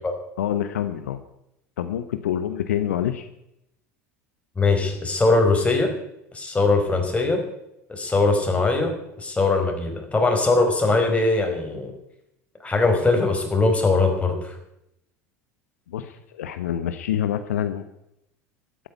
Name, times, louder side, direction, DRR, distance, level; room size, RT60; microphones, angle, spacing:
voice 1, 0.4-1.2 1.8-3.3 15.9-17.8, left 10 dB, 80° left, 10 dB, 1.0 m, -26 dB
voice 2, 4.6-5.9 6.3-7.4 7.9-8.9 9.2-11.9 12.6-14.4, left 3 dB, 15° left, 3 dB, 5.2 m, -21 dB
13.0 x 10.5 x 9.4 m, 0.82 s
hypercardioid pair, 80°, 8 cm